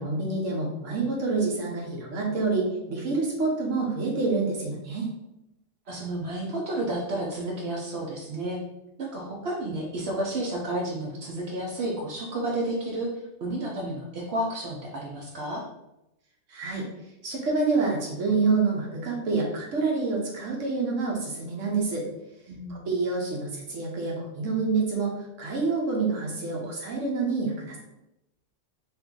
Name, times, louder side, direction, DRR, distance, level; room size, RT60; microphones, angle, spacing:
voice 1, 0.0-5.1 16.5-16.8 17.2-22.0 22.7-27.8, right 3 dB, 80° right, -2 dB, 1.2 m, -27 dB
voice 2, 5.9-8.6 9.0-13.1 13.4-15.6 22.5-22.9, right 1 dB, 65° right, -2 dB, 0.8 m, -31 dB
2.8 x 2.6 x 3.6 m, 0.88 s
omnidirectional pair, 1.3 m